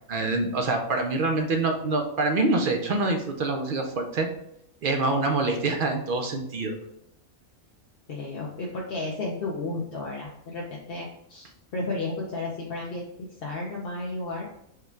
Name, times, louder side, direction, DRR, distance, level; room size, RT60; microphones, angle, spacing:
voice 1, 0.1-4.3 4.8-6.8, right 3 dB, 55° right, 3 dB, 0.6 m, -25 dB
voice 2, 8.1-13.1 13.4-14.4, left 2 dB, 50° left, -3 dB, 0.8 m, -33 dB
4.8 x 2.3 x 4.5 m, 0.74 s
omnidirectional pair, 1.4 m